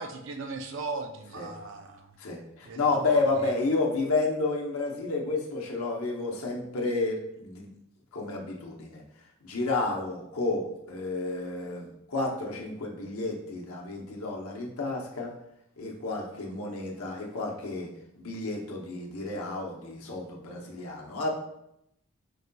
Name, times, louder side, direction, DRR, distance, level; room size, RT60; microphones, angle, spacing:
voice 1, 0.0-2.1 2.6-3.2, right 3 dB, 65° right, 5 dB, 0.4 m, -37 dB
voice 2, 2.2-7.7 8.1-9.0 9.4-15.3 15.8-17.9 18.1-21.3, left 3 dB, 90° left, -1 dB, 0.7 m, -31 dB
4.7 x 3.9 x 2.2 m, 0.79 s
head